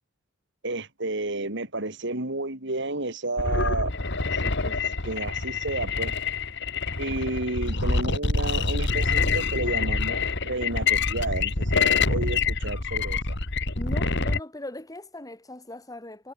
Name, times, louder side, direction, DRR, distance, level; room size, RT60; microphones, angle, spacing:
voice 1, 0.6-3.9 4.2-4.8 5.0-6.2 7.0-13.4, right 2 dB, 60° right, 4.8 m, -31 dB
sound 1, 3.4-14.4, left 4 dB, 60° left, 2.7 m, -26 dB
voice 2, 13.8-16.3, left 1 dB, 20° left, 3.1 m, -39 dB
head